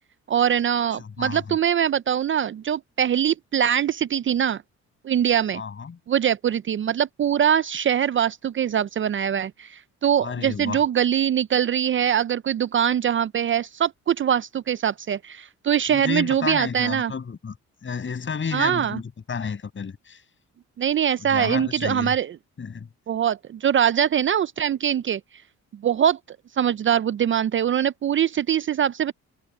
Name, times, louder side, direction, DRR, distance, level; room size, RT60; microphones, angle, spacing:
voice 1, 0.3-4.6 5.0-5.6 6.1-17.1 18.5-19.0 20.8-22.4 23.1-25.2 25.8-26.2 26.6-29.1, right 9 dB, 40° right, 0.5 m, -23 dB
voice 2, 1.0-1.6 5.5-6.0 10.2-10.8 15.9-17.5 17.8-20.2 21.2-22.1 22.6-22.9, left 6 dB, 40° left, 6.4 m, -31 dB
cardioid pair, 90°, 30 cm